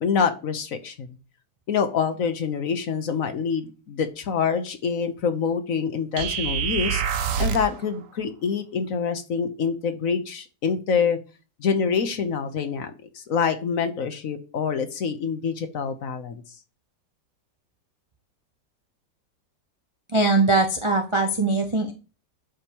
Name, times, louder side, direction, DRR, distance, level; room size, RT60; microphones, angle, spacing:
voice 1, 0.0-1.1 1.7-7.0 7.4-11.2 11.6-16.4, left 6 dB, 55° left, 9 dB, 1.1 m, -26 dB
sound 1, 6.2-7.8, right 8 dB, 60° right, 1.0 m, -26 dB
voice 2, 20.1-21.9, right 3 dB, 35° right, 4 dB, 0.4 m, -21 dB
11.0 x 5.1 x 2.9 m, 0.33 s
omnidirectional pair, 1.8 m